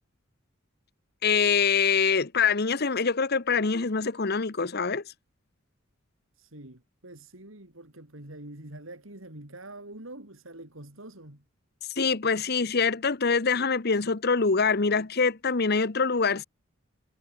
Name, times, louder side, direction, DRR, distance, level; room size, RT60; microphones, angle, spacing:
voice 1, 1.2-5.0 12.0-16.4, left 5 dB, 50° left, 1.0 m, -24 dB
voice 2, 6.3-11.4, right 1 dB, 70° right, 4.1 m, -45 dB
head